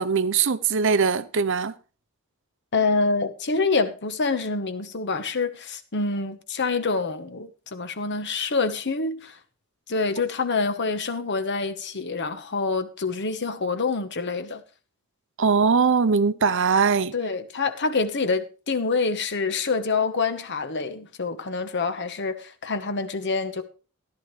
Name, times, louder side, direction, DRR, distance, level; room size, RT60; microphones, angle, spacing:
voice 1, 0.0-1.7 15.4-17.1, right 5 dB, 60° right, 0.7 m, -21 dB
voice 2, 2.7-9.4 9.9-14.6 17.1-23.6, left 4 dB, 55° left, 1.1 m, -26 dB
14.0 x 11.0 x 3.2 m
head